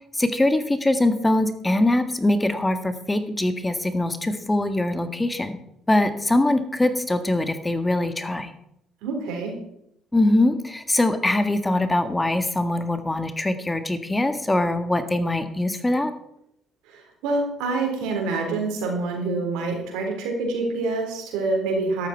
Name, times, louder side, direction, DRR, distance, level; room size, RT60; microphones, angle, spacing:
voice 1, 0.1-5.6 5.9-8.5 10.1-16.1, left 1 dB, 15° left, 9 dB, 1.6 m, -22 dB
voice 2, 9.0-9.5 16.9-22.1, right 3 dB, 80° right, 2 dB, 4.2 m, -26 dB
13.0 x 12.0 x 4.5 m, 0.76 s
hypercardioid pair, 60°, 0 cm